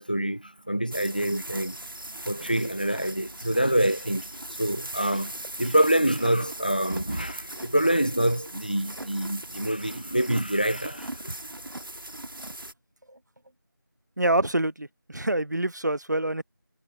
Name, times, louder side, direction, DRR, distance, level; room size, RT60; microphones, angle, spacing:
voice 1, 0.0-1.8 2.3-11.4, right 1 dB, 25° left, 0.5 m, -26 dB
sound 1, 0.9-12.7, right 1 dB, 80° right, 1.3 m, -39 dB
voice 2, 14.2-16.4, right 1 dB, 55° right, 0.9 m, -26 dB
figure-of-eight pair, 175°, 11 cm